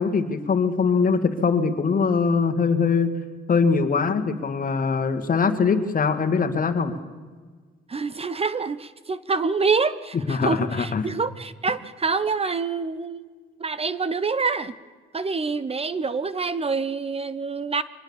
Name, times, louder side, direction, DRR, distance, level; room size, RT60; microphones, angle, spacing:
voice 1, 0.0-3.1 3.5-6.9 10.3-11.0, left 5 dB, 45° left, 9 dB, 2.1 m, -22 dB
voice 2, 7.9-13.2 13.6-14.7 15.1-17.8, right 4 dB, 30° right, 16 dB, 0.9 m, -26 dB
24.0 x 19.5 x 7.3 m, 1.5 s
cardioid pair, 90°, 20 cm